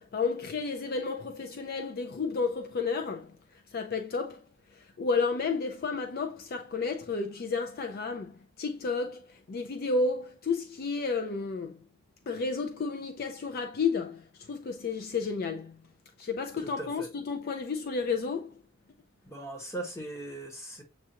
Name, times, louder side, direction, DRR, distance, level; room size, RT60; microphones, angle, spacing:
voice 1, 0.0-4.4 4.7-11.8 12.3-15.8 16.2-18.6, left 4 dB, 50° left, 0.4 m, -32 dB
voice 2, 16.6-17.1 19.2-20.8, right 2 dB, 15° left, 1.2 m, -39 dB
7.2 x 2.5 x 2.8 m
head